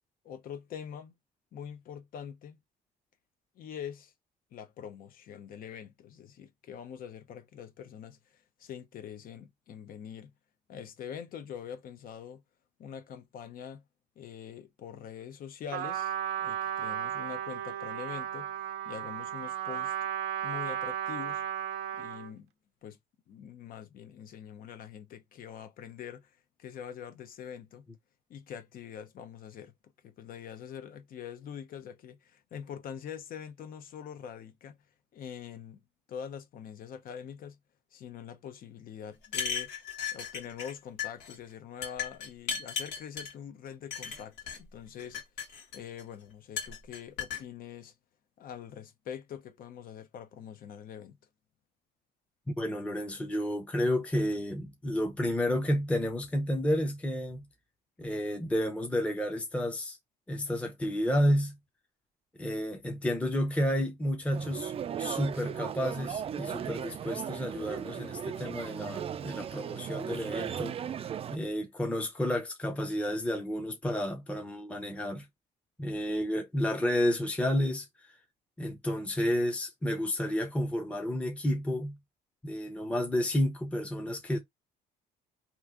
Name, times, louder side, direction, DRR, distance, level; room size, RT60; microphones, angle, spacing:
voice 1, 0.2-1.2 1.5-2.6 3.6-4.1 4.5-10.3 10.7-12.4 12.8-13.8 14.2-18.5 18.8-19.9 20.4-21.4 22.0-22.5 22.8-23.0 23.3-27.9 28.3-29.7 30.0-34.8 35.1-35.8 36.1-37.6 37.9-39.7 40.1-45.2 45.7-47.9 48.4-51.2, left 8 dB, 55° left, 0.7 m, -44 dB
Trumpet, 15.7-22.3, right 10 dB, 80° right, 0.7 m, -34 dB
sound 1, 39.2-40.7 41.0-41.4 41.8-43.3 43.9-44.6 45.0-46.0 46.6-47.4, left 6 dB, 85° left, 1.5 m, -36 dB
voice 2, 52.6-57.4 58.0-60.0 60.3-61.6 62.4-64.7 65.0-70.8 71.3-75.3 75.8-78.1 78.6-82.0 82.4-84.4, equal, 5° left, 0.7 m, -31 dB
sound 2, 64.3-71.4, right 8 dB, 35° right, 0.4 m, -37 dB
3.0 x 2.4 x 3.6 m
cardioid pair, 110°, 17 cm